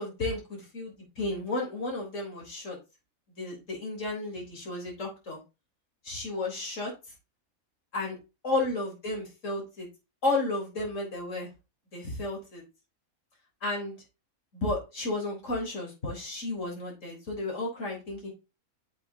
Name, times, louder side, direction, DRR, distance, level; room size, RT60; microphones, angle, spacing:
voice 1, 0.0-2.8 3.4-5.4 6.0-6.9 7.9-8.1 8.4-9.9 10.2-11.5 11.9-12.6 13.6-14.0 14.5-18.3, left 2 dB, 60° left, -2 dB, 4.1 m, -32 dB
9.2 x 6.9 x 2.8 m, 0.27 s
omnidirectional pair, 1.5 m